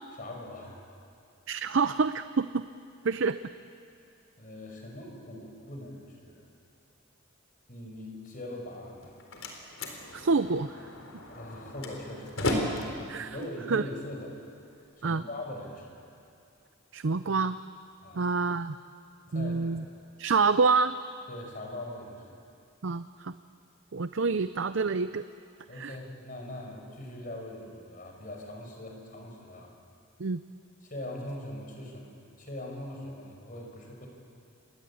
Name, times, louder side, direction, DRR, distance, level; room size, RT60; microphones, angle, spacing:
voice 1, 0.1-0.8 4.4-6.4 7.7-9.2 11.3-13.0 13.3-14.4 15.0-16.0 18.0-18.2 19.3-19.8 21.3-22.4 25.7-29.7 30.8-32.1 32.4-34.1, left 1 dB, 40° left, 1 dB, 5.5 m, -41 dB
voice 2, 1.5-2.7 3.0-3.4 10.1-10.8 13.1-13.3 13.7-13.8 15.0-15.2 16.9-17.6 18.1-18.8 19.3-19.8 20.2-21.0 22.8-23.3 23.9-25.2 25.8-25.9 30.2-30.4, right 4 dB, 60° right, 12 dB, 0.6 m, -27 dB
Slam, 8.8-14.8, left 1 dB, 70° left, 4.0 m, -36 dB
29.0 x 22.0 x 8.6 m, 2.5 s
head